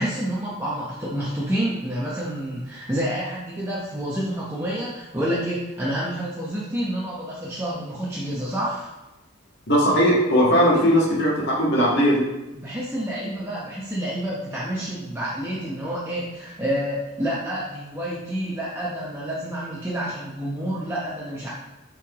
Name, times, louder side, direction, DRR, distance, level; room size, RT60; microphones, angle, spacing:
voice 1, 0.0-8.9 10.7-10.8 12.5-21.5, right 1 dB, 15° right, -7 dB, 0.9 m, -28 dB
voice 2, 9.7-12.2, equal, 55° left, -6 dB, 1.5 m, -18 dB
7.4 x 4.7 x 3.0 m, 1.0 s
head